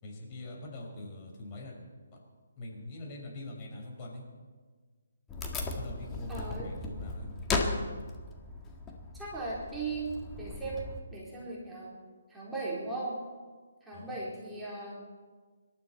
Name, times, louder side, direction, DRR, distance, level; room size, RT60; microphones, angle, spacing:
voice 1, 0.0-1.8 2.1-2.2 2.6-4.2 5.8-7.3 13.9-14.2, left 2 dB, 30° left, -1 dB, 5.2 m, -43 dB
Wood, 5.3-11.0, left 3 dB, 15° left, 1.8 m, -36 dB
voice 2, 6.3-6.7 9.1-10.1 10.4-12.0 12.3-13.2 13.8-15.0, right 3 dB, 5° right, -8 dB, 4.2 m, -38 dB
26.0 x 12.5 x 4.4 m, 1.4 s
figure-of-eight pair, 140°, 0 cm